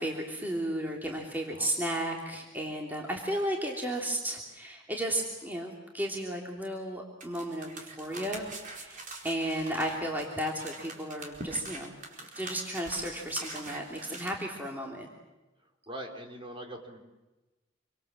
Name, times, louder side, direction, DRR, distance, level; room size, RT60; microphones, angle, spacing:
voice 1, 0.0-8.5 8.7-12.0 12.3-15.1, right 1 dB, 10° right, -1 dB, 3.0 m, -34 dB
sound 1, 7.2-14.3, right 3 dB, 45° right, 4.5 m, -44 dB
voice 2, 15.9-17.1, right 1 dB, 30° right, 2 dB, 3.9 m, -42 dB
27.5 x 25.0 x 7.6 m, 1.1 s
head